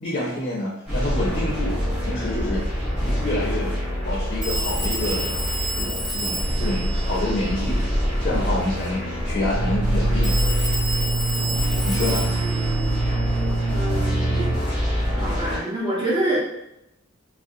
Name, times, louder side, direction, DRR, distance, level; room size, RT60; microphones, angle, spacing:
voice 1, 0.0-2.6 3.0-3.8 4.0-5.3 5.8-7.9 8.2-10.4 11.8-12.3, left 1 dB, 40° left, -4 dB, 0.5 m, -28 dB
sound 1, 0.9-15.6, equal, 5° right, 1.0 m, -25 dB
Telephone, 2.2-2.3 4.4-8.1 10.2-13.9, right 1 dB, 45° right, 1.2 m, -31 dB
sound 2, 9.5-14.5, right 3 dB, 80° right, 0.8 m, -26 dB
voice 2, 12.2-13.1 13.7-14.5 15.1-16.4, right 1 dB, 25° right, -5 dB, 0.6 m, -27 dB
2.6 x 2.0 x 2.5 m, 0.85 s
head